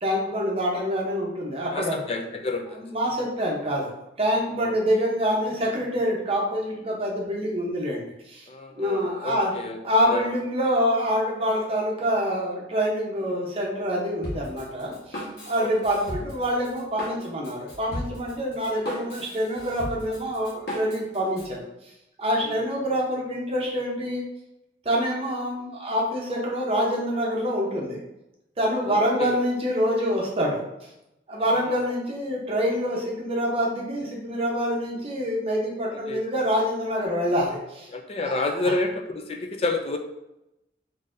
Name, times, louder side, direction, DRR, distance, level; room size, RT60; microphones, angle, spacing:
voice 1, 0.0-2.0 2.8-3.9 4.2-8.5 8.7-9.5 9.8-21.6 22.2-24.2 24.8-28.0 28.6-30.7 31.3-37.9 38.2-38.7, equal, 35° right, -2 dB, 0.7 m, -26 dB
voice 2, 1.7-2.8 4.6-4.7 8.5-9.8 10.1-10.3 15.6-15.7 22.4-22.6 28.8-29.4 31.6-31.8 35.9-36.2 37.9-40.0, left 2 dB, 35° left, 4 dB, 0.4 m, -29 dB
Drum kit, 14.2-21.5, equal, 60° left, 1.2 m, -37 dB
3.9 x 2.6 x 2.5 m, 0.88 s
head